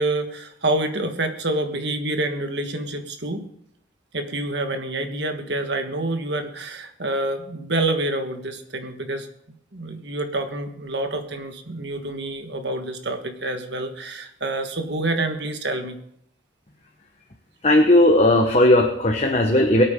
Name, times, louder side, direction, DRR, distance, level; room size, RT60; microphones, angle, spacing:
voice 1, 0.0-3.5 4.1-9.3 9.7-16.0, right 2 dB, 60° right, 6 dB, 1.6 m, -27 dB
voice 2, 17.6-19.8, left 1 dB, 35° left, 2 dB, 1.2 m, -16 dB
22.0 x 9.0 x 3.8 m, 0.71 s
head